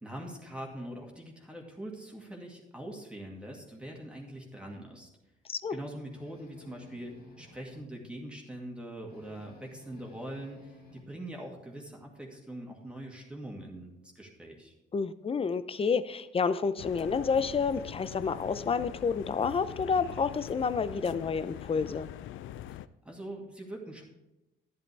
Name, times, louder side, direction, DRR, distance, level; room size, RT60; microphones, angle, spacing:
voice 1, 0.0-5.1 5.7-13.9 14.2-14.7 23.0-24.0, right 1 dB, 5° right, -1 dB, 2.3 m, -43 dB
sound 1, 6.1-7.9 9.1-11.0, left 2 dB, 55° left, 2.7 m, -55 dB
voice 2, 14.9-22.1, left 5 dB, 30° left, 14 dB, 0.6 m, -29 dB
sound 2, 16.8-22.9, left 12 dB, 80° left, 0.4 m, -43 dB
11.0 x 10.5 x 3.4 m, 0.97 s
cardioid pair, 90°, 20 cm